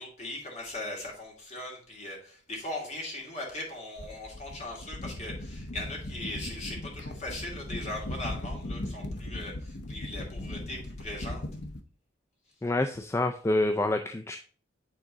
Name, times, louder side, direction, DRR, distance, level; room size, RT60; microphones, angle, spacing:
voice 1, 0.0-11.4, left 1 dB, 35° left, -1 dB, 2.3 m, -39 dB
sound 1, 4.0-11.8, left 1 dB, 65° left, 0.8 m, -38 dB
voice 2, 12.6-14.4, left 2 dB, 15° left, 6 dB, 0.3 m, -27 dB
8.8 x 3.7 x 3.8 m, 0.43 s
head